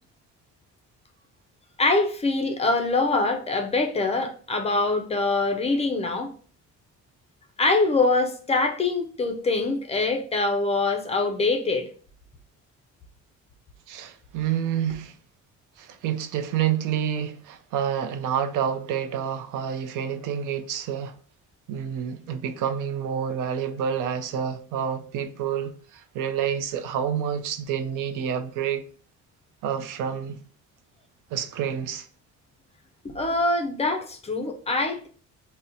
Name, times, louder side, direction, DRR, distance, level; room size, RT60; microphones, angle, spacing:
voice 1, 1.8-6.3 7.6-11.9 33.0-35.1, left 3 dB, 20° left, 0.3 m, -24 dB
voice 2, 13.9-15.1 15.8-21.1 21.7-28.8 29.6-30.4 31.3-32.1, right 8 dB, 85° right, 0.5 m, -28 dB
2.7 x 2.1 x 3.6 m
cardioid pair, 145°, 30 cm